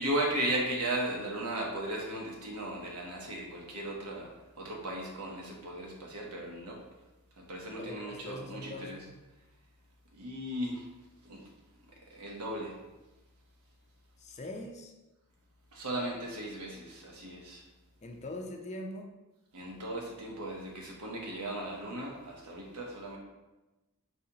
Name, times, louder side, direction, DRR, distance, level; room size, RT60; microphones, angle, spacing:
voice 1, 0.0-4.3 4.6-6.8 7.5-9.0 10.2-10.8 11.2-11.4 12.1-12.8 15.7-17.6 19.5-23.2, right 1 dB, 90° right, -1 dB, 1.0 m, -36 dB
voice 2, 7.8-9.1 14.2-14.9 18.0-19.1, left 1 dB, 30° left, 3 dB, 0.4 m, -42 dB
3.9 x 2.8 x 4.0 m, 1.1 s
head